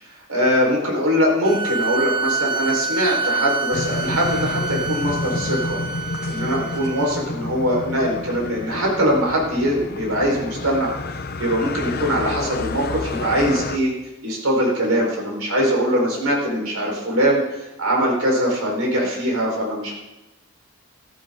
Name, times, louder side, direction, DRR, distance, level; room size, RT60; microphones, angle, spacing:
voice 1, 0.3-5.8 6.3-10.9 11.4-13.9 14.2-19.9, equal, 75° right, -1 dB, 4.7 m, -22 dB
sound 1, 1.4-7.1, right 4 dB, 20° right, 0.6 m, -27 dB
sound 2, 3.7-13.8, left 3 dB, 45° left, 0.7 m, -30 dB
14.5 x 14.0 x 3.9 m, 1.0 s
head